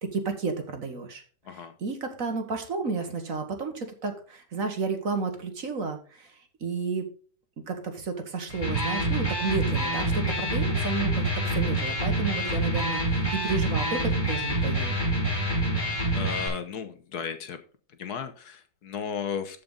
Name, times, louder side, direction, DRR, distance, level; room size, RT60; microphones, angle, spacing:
voice 1, 0.0-7.1 7.7-14.9, right 4 dB, 55° right, 6 dB, 1.8 m, -32 dB
Electric guitar, 8.5-16.5, right 1 dB, 15° left, 5.4 m, -27 dB
voice 2, 16.1-17.6 18.0-19.6, left 7 dB, 70° left, 9 dB, 1.5 m, -35 dB
14.5 x 5.3 x 3.9 m, 0.40 s
omnidirectional pair, 1.8 m